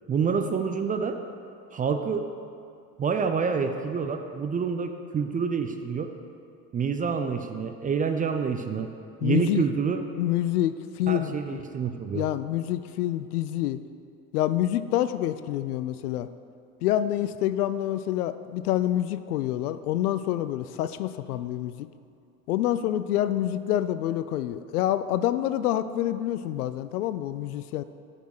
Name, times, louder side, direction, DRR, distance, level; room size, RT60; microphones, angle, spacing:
voice 1, 0.1-1.2 1.7-2.3 3.0-6.1 6.7-8.9 9.2-10.0 11.1-12.3, right 6 dB, 20° right, 6 dB, 0.4 m, -27 dB
voice 2, 9.2-9.7 10.1-11.6 12.1-13.8 14.3-16.3 16.8-21.9 22.5-27.8, left 12 dB, 70° left, 13 dB, 0.5 m, -27 dB
8.1 x 5.8 x 6.5 m, 2.5 s
figure-of-eight pair, 65°, 47 cm